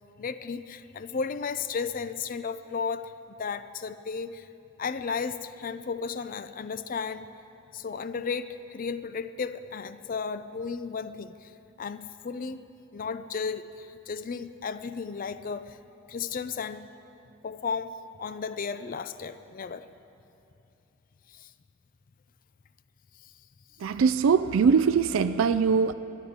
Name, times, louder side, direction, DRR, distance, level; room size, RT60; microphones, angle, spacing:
voice 1, 0.2-4.5 4.8-7.3 7.7-11.5 11.8-12.6 12.9-15.8 16.1-16.9 17.4-17.9 18.2-19.9 21.3-21.5 23.2-23.3, left 5 dB, 40° left, 13 dB, 0.4 m, -34 dB
voice 2, 23.8-25.9, right 6 dB, 70° right, 12 dB, 0.4 m, -22 dB
13.5 x 9.5 x 9.6 m, 2.8 s
head